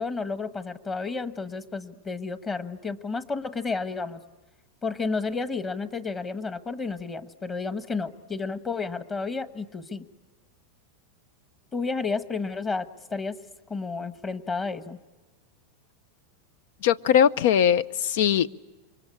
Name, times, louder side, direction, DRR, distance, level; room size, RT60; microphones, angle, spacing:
voice 1, 0.0-4.2 4.8-10.1 11.7-13.4 13.7-15.0, left 4 dB, 20° left, 11 dB, 1.3 m, -31 dB
voice 2, 16.8-18.5, left 9 dB, 70° left, 16 dB, 0.8 m, -20 dB
28.0 x 24.0 x 8.6 m, 1.2 s
supercardioid pair, 130°, 0 cm